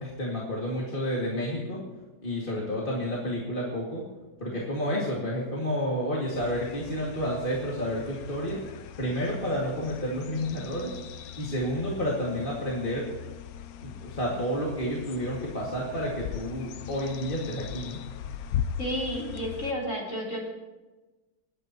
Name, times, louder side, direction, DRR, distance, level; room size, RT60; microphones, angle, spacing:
voice 1, 0.0-1.8 2.2-4.0 4.4-8.6 9.0-10.9 11.4-13.1 13.8-18.0, equal, 30° left, -4 dB, 2.4 m, -30 dB
sound 1, 6.3-19.7, left 9 dB, 70° left, 1.1 m, -39 dB
voice 2, 18.8-20.5, equal, 45° left, -4 dB, 4.3 m, -31 dB
29.5 x 10.0 x 3.0 m, 1.2 s
omnidirectional pair, 1.8 m